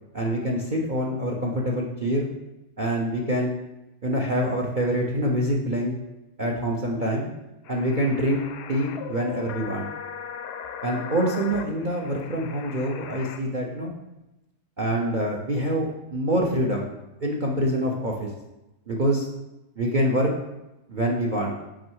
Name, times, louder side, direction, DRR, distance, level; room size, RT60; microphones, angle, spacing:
voice 1, 0.1-2.3 2.8-3.6 4.0-6.0 6.4-7.3 7.7-8.4 8.7-9.9 10.8-13.9 14.8-16.9 17.2-18.3 18.9-19.3 19.8-20.3 20.9-21.6, equal, 45° right, 0 dB, 0.6 m, -25 dB
sound 1, 7.6-13.4, left 7 dB, 75° left, 1.1 m, -38 dB
6.2 x 5.3 x 4.7 m, 0.98 s
omnidirectional pair, 1.8 m